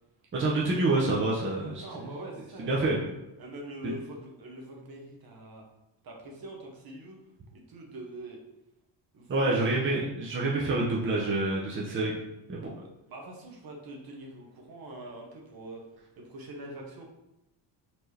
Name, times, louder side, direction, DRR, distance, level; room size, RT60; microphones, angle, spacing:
voice 1, 0.3-1.8 2.6-3.0 9.3-12.1 12.5-12.7, right 2 dB, 25° right, -4 dB, 0.7 m, -27 dB
voice 2, 1.8-5.6 6.0-7.2 7.5-8.4 9.1-9.9 12.7-15.8 16.2-17.0, right 1 dB, 45° right, -1 dB, 1.1 m, -44 dB
4.4 x 2.8 x 3.2 m, 0.89 s
cardioid pair, 110°, 50 cm